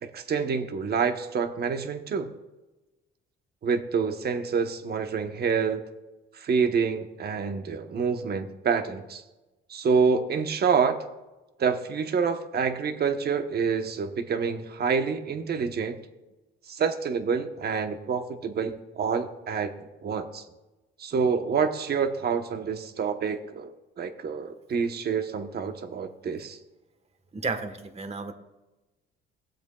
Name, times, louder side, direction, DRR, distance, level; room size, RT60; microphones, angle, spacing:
voice 1, 0.0-2.3 3.6-5.8 6.3-9.2 9.7-11.0 11.6-16.0 16.7-19.7 20.0-20.4 21.0-23.7 24.0-26.6, right 6 dB, 55° right, 7 dB, 1.0 m, -27 dB
voice 2, 27.3-28.3, right 4 dB, 30° right, 8 dB, 1.2 m, -32 dB
18.0 x 7.9 x 2.3 m, 1.1 s
cardioid pair, 90°, 20 cm